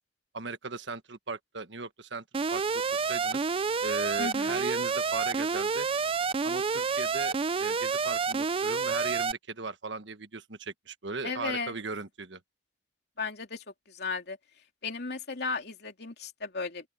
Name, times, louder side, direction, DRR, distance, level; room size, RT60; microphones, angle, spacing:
voice 1, 0.3-2.2 2.5-2.8 3.1-3.4 3.8-5.9 6.4-12.4, right 3 dB, 85° right, 1.4 m, -38 dB
Alarm, 2.3-9.3, right 5 dB, 30° right, 0.4 m, -29 dB
voice 2, 4.2-4.7 11.2-11.7 13.2-14.4 14.8-16.9, left 4 dB, 65° left, 3.1 m, -35 dB
open air
head